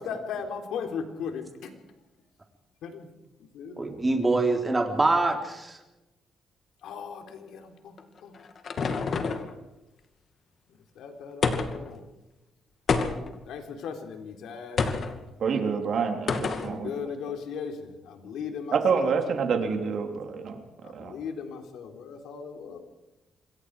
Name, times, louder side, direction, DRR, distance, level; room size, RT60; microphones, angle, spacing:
voice 1, 0.0-1.7 2.8-3.1 3.4-3.9 6.8-8.0 8.2-8.3 11.0-12.0 13.5-14.8 16.5-19.1 20.8-22.8, left 6 dB, 85° left, 5 dB, 3.6 m, -37 dB
voice 2, 3.8-5.8, right 2 dB, 20° right, 4 dB, 3.6 m, -24 dB
sound 1, 8.0-9.5 11.4-11.9 12.9-13.4 14.8-15.2 16.3-16.7, left 5 dB, 45° left, 2.4 m, -27 dB
voice 3, 15.4-16.9 18.7-21.2, right 5 dB, 55° right, 5 dB, 3.5 m, -27 dB
26.5 x 22.5 x 4.9 m, 0.98 s
cardioid pair, 130°, 0 cm